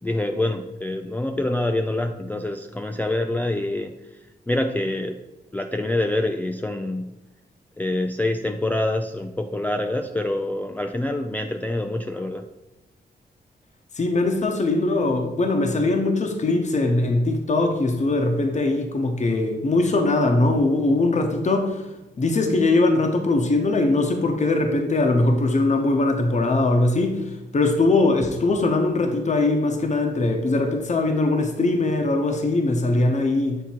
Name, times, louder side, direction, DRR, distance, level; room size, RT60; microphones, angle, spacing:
voice 1, 0.0-4.2 4.5-5.2 5.5-7.1 7.8-12.5, left 1 dB, 10° left, 5 dB, 0.3 m, -26 dB
voice 2, 13.9-21.8 22.2-27.2 27.5-33.6, left 2 dB, 40° left, 4 dB, 0.9 m, -21 dB
7.3 x 3.5 x 4.3 m, 1.0 s
cardioid pair, 75°, 18 cm